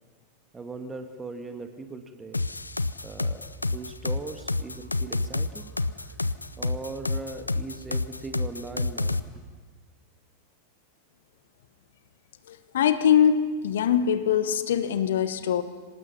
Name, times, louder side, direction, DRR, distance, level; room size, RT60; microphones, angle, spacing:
voice 1, 0.5-2.4 3.0-9.2, right 3 dB, 15° right, 6 dB, 1.6 m, -40 dB
sound 1, 2.3-9.2, left 2 dB, 80° left, 0.6 m, -28 dB
voice 2, 12.5-15.6, left 8 dB, 60° left, 12 dB, 1.1 m, -23 dB
25.5 x 19.0 x 5.8 m, 1.5 s
figure-of-eight pair, 90°, 0 cm